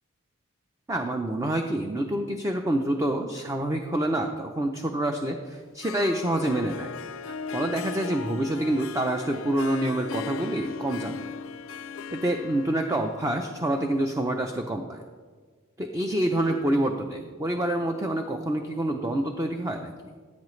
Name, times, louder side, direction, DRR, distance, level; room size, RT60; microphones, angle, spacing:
voice 1, 0.9-6.9 7.3-11.3 12.1-15.0 15.8-19.9, right 1 dB, 15° right, 4 dB, 0.5 m, -27 dB
Harp, 5.6-14.5, left 4 dB, 75° left, 0.4 m, -38 dB
15.5 x 8.3 x 3.2 m, 1.5 s
head